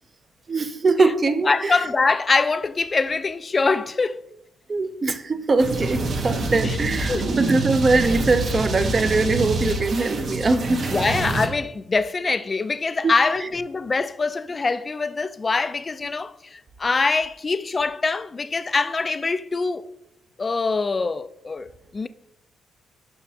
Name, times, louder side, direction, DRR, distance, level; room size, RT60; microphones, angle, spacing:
voice 1, 0.5-1.9 4.7-10.9 13.0-13.5, right 3 dB, 35° right, 0.5 m, -22 dB
voice 2, 1.5-4.2 6.6-6.8 7.1-7.4 10.9-19.8 20.4-22.1, left 4 dB, 30° left, 0.3 m, -24 dB
sound 1, 5.6-11.5, right 2 dB, 55° right, 0.9 m, -26 dB
6.0 x 5.8 x 2.8 m
cardioid pair, 90°, 0 cm